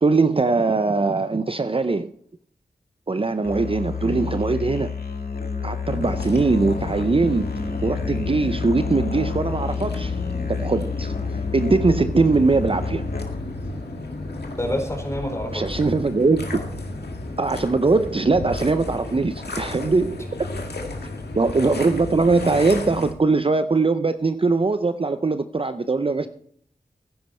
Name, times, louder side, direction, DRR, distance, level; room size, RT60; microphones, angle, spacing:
voice 1, 0.0-2.1 3.1-4.9 5.6-7.5 7.8-10.2 10.5-11.1 11.5-13.1 15.5-16.6 17.4-20.5 21.3-26.3, right 3 dB, 35° right, 0.5 m, -21 dB
Musical instrument, 3.4-13.6, left 5 dB, 70° left, 1.9 m, -29 dB
sound 1, 5.9-23.1, left 2 dB, 90° left, 1.9 m, -32 dB
voice 2, 14.6-15.6, equal, 15° left, 4.3 m, -27 dB
15.0 x 10.0 x 4.3 m
wide cardioid pair, 50°, 16 cm